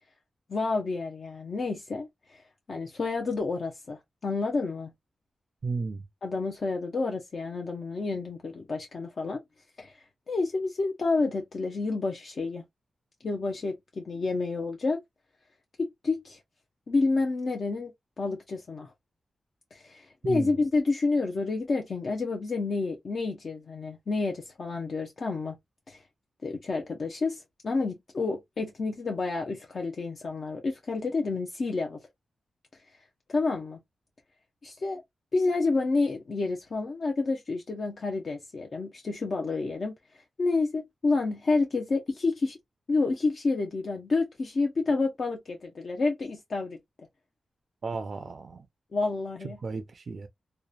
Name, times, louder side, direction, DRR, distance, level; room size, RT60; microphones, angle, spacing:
voice 1, 0.5-2.4 2.7-4.9 6.2-9.4 9.8-12.6 13.2-15.0 15.8-16.4 16.9-17.9 18.2-18.9 19.7-25.6 25.9-26.0 26.4-32.0 32.7-33.0 33.3-33.8 34.6-35.0 35.3-42.6 42.9-46.8 48.9-49.6, left 3 dB, 55° left, 0.5 m, -29 dB
voice 2, 5.6-6.0 20.3-20.5 47.8-48.7 49.6-50.3, right 4 dB, 55° right, 0.4 m, -33 dB
2.8 x 2.1 x 2.3 m
wide cardioid pair, 105°, 0 cm